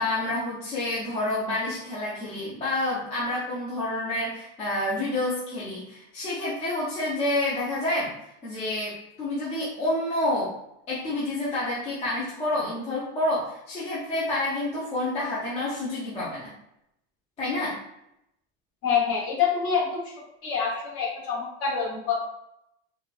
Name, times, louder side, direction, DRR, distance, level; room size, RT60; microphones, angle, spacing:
voice 1, 0.0-8.1 8.4-10.5 10.9-16.5 17.4-17.8, left 1 dB, 20° left, -9 dB, 0.6 m, -28 dB
voice 2, 18.8-20.1 20.4-22.2, left 6 dB, 40° left, -4 dB, 1.2 m, -26 dB
4.3 x 2.2 x 2.4 m, 0.82 s
cardioid pair, 180°, 34 cm